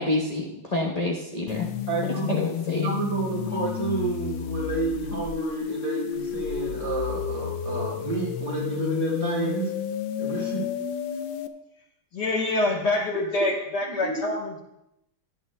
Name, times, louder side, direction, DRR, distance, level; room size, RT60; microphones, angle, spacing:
voice 1, 0.0-1.7 2.0-2.9, left 2 dB, 30° left, -3 dB, 0.8 m, -28 dB
sound 1, 1.5-11.5, left 9 dB, 75° left, 1.2 m, -31 dB
voice 2, 1.9-2.3 2.7-9.7 10.2-10.6 13.1-13.3 13.9-14.2, right 3 dB, 35° right, -5 dB, 4.5 m, -30 dB
voice 3, 12.1-14.6, left 2 dB, 55° left, 0 dB, 1.7 m, -26 dB
17.5 x 11.0 x 2.3 m, 0.85 s
omnidirectional pair, 2.3 m